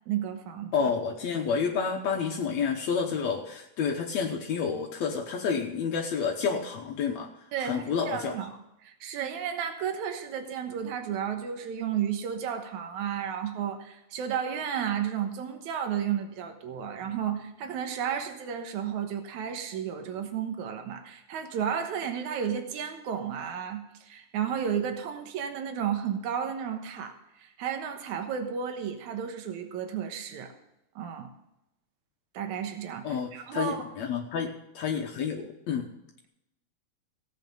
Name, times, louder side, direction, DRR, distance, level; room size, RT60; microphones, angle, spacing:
voice 1, 0.1-0.9 7.5-8.5 8.8-30.5 31.0-31.3 32.3-33.1 33.3-33.9, right 8 dB, 80° right, 6 dB, 2.6 m, -33 dB
voice 2, 0.7-7.3 7.6-8.4 33.0-35.9, left 6 dB, 70° left, 2 dB, 2.2 m, -29 dB
16.5 x 8.3 x 5.4 m, 0.84 s
omnidirectional pair, 3.3 m